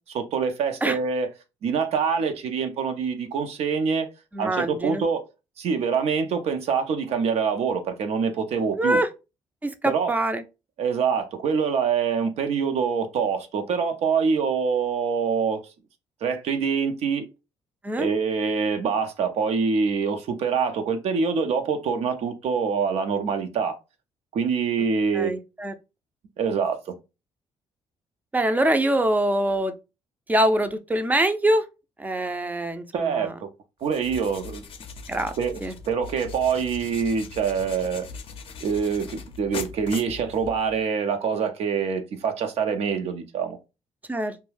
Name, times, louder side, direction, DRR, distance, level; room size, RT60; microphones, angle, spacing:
voice 1, 0.1-1.3 1.6-4.1 4.4-5.2 5.6-9.0 9.9-10.1 10.8-15.6 16.2-17.3 18.0-23.7 24.3-25.3 26.4-26.8 32.9-33.5 33.8-34.6 35.4-38.1 38.6-43.6, right 6 dB, 70° right, 0.5 m, -25 dB
voice 2, 4.3-5.0 8.8-9.1 9.6-10.4 17.8-18.1 25.1-25.7 28.3-29.7 30.3-31.6 32.0-33.3 35.1-35.3 35.6-35.7 44.1-44.4, right 1 dB, 15° right, 0.4 m, -24 dB
sound 1, 33.8-40.8, left 5 dB, 55° left, 0.5 m, -40 dB
2.3 x 2.1 x 3.2 m
cardioid pair, 75°, 11 cm